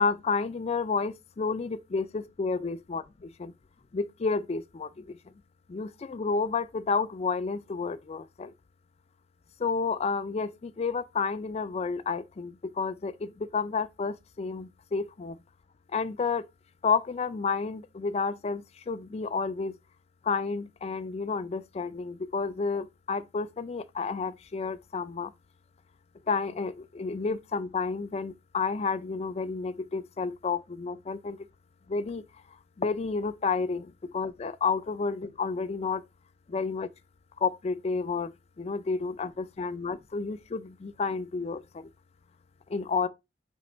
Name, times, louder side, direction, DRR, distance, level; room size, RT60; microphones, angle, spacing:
voice 1, 0.0-3.0 3.4-3.5 3.9-4.9 5.7-8.5 9.6-15.4 15.9-16.4 16.8-19.7 20.3-25.3 26.3-31.4 31.9-32.2 32.8-33.9 34.1-36.0 36.5-36.9 37.4-38.3 38.6-41.6 42.7-43.1, left 4 dB, 35° left, 0.3 m, -30 dB
4.3 x 3.1 x 3.8 m
head